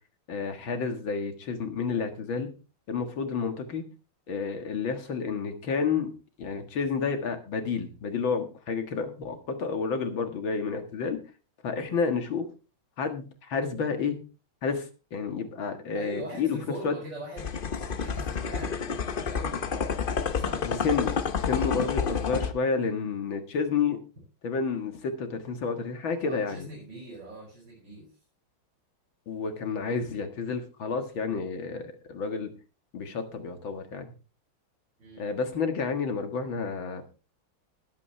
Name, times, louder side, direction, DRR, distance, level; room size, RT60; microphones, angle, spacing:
voice 1, 0.3-2.5 2.9-3.8 4.3-6.1 6.4-11.2 11.6-12.5 13.0-14.2 14.6-16.6 16.8-16.9 20.6-24.0 24.4-26.7 29.3-32.5 32.9-34.1 35.2-37.1, left 5 dB, 70° left, 7 dB, 2.4 m, -30 dB
voice 2, 15.9-17.5 17.8-20.0 20.3-20.8 26.2-28.1 35.0-35.3, right 1 dB, 60° right, -5 dB, 7.2 m, -42 dB
sound 1, 17.4-22.5, left 6 dB, 90° left, 0.4 m, -29 dB
20.5 x 8.6 x 3.3 m, 0.32 s
omnidirectional pair, 2.3 m